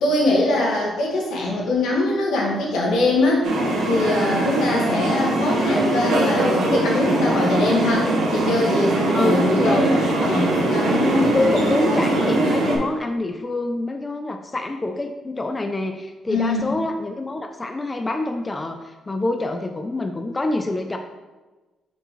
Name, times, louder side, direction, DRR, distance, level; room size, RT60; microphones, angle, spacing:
voice 1, 0.0-3.5 3.8-11.3 16.3-16.7, left 2 dB, 85° left, -2 dB, 1.6 m, -22 dB
sound 1, 3.4-12.8, right 2 dB, 85° right, 1.2 m, -21 dB
voice 2, 9.1-9.8 11.2-21.0, left 2 dB, 20° left, 5 dB, 0.4 m, -26 dB
6.2 x 5.3 x 3.1 m, 1.2 s
cardioid pair, 110°, 0 cm